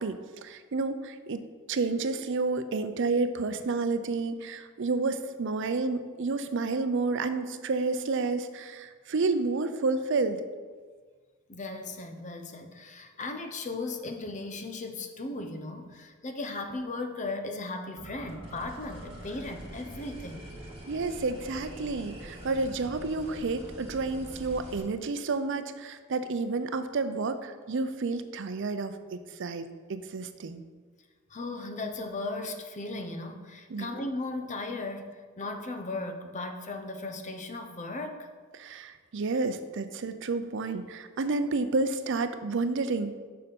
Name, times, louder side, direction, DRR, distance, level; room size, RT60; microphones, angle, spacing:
voice 1, 0.0-1.4 1.7-10.4 20.9-30.6 33.7-33.9 38.5-43.2, right 3 dB, 60° right, 10 dB, 0.5 m, -30 dB
voice 2, 11.5-20.4 31.3-38.3, left 2 dB, 35° left, 6 dB, 0.7 m, -37 dB
sound 1, 18.0-24.8, right 1 dB, 25° right, 2.1 m, -44 dB
6.6 x 5.5 x 5.4 m, 1.5 s
head